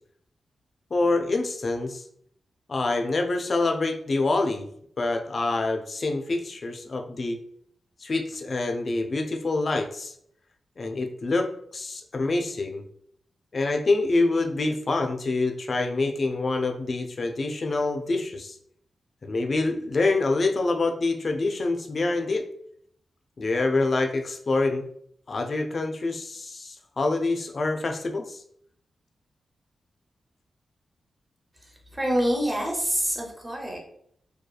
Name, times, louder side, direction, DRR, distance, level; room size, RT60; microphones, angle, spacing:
voice 1, 0.9-2.0 2.7-4.7 5.0-7.4 8.0-10.1 10.8-12.8 13.5-18.6 19.2-22.5 23.4-24.8 25.3-28.4, left 3 dB, 40° left, 4 dB, 0.3 m, -26 dB
voice 2, 31.9-33.8, equal, 15° right, -1 dB, 0.6 m, -26 dB
2.7 x 2.2 x 2.3 m, 0.67 s
wide cardioid pair, 140°, 0 cm